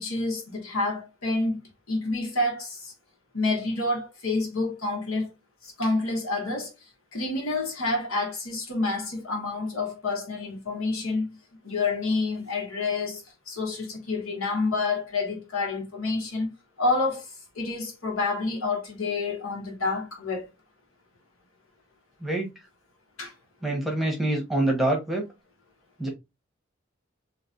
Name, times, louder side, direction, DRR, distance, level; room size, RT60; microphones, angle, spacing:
voice 1, 0.0-1.6 1.9-2.9 3.3-5.3 5.6-6.7 7.1-11.2 11.6-16.5 16.8-20.4 23.2-23.3, left 3 dB, 85° left, 1.4 m, -28 dB
voice 2, 23.6-25.3 26.0-26.1, right 1 dB, ahead, 0.9 m, -25 dB
3.2 x 3.0 x 2.6 m
head